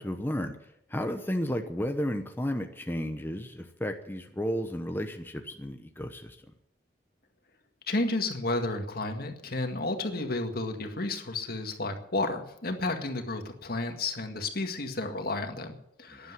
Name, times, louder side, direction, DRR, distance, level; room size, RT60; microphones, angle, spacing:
voice 1, 0.0-6.5 16.1-16.3, equal, 10° left, 5 dB, 1.0 m, -33 dB
voice 2, 7.9-16.3, left 2 dB, 60° left, 5 dB, 1.9 m, -32 dB
12.0 x 10.5 x 9.6 m, 0.78 s
head